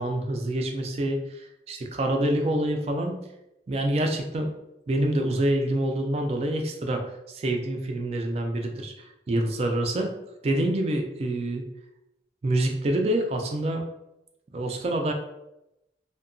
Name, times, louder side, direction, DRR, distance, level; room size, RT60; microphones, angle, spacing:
voice 1, 0.0-3.2 3.7-4.5 4.9-10.1 10.4-11.7 12.4-13.8 14.5-15.1, right 1 dB, 35° right, 3 dB, 0.3 m, -26 dB
2.7 x 2.1 x 2.5 m, 0.88 s
head